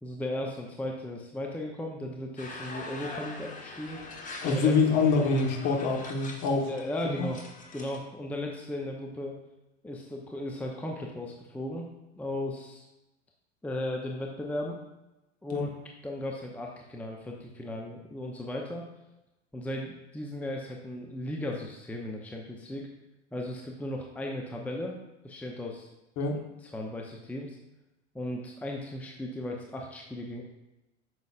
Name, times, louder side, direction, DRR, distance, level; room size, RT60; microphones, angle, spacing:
voice 1, 0.0-4.0 4.4-4.6 6.7-7.4 7.7-9.3 9.8-11.9 12.2-12.9 13.6-14.8 15.4-18.8 19.5-22.9 23.3-25.0 25.2-25.9 26.6-27.6 28.1-30.4, left 1 dB, 5° left, 0 dB, 0.7 m, -36 dB
sound 1, 2.4-8.0, left 2 dB, 20° left, 1.2 m, -43 dB
voice 2, 4.4-6.7 7.2-7.3 15.5-15.6 26.2-26.4, left 4 dB, 40° left, 2 dB, 1.4 m, -25 dB
9.1 x 6.5 x 2.5 m, 0.97 s
figure-of-eight pair, 90°, 37 cm